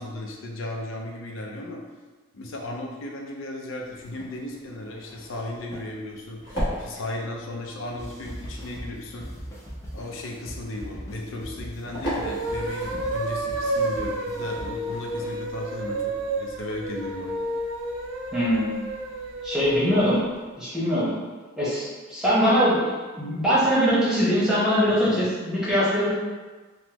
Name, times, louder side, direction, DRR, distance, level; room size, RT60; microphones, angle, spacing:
voice 1, 0.0-1.8 2.3-6.4 6.8-9.3 9.9-17.4 25.2-25.3, left 1 dB, 70° left, 0 dB, 0.5 m, -35 dB
sound 1, 3.8-13.4, equal, 55° left, 1.2 m, -38 dB
sound 2, 8.0-15.3, equal, 15° left, 0.4 m, -40 dB
sound 3, 12.1-20.3, right 1 dB, 70° right, 0.4 m, -30 dB
voice 2, 18.3-18.7 19.4-20.2 20.6-21.1 21.6-26.1, equal, 5° right, -10 dB, 0.9 m, -22 dB
3.5 x 2.0 x 2.9 m, 1.3 s
head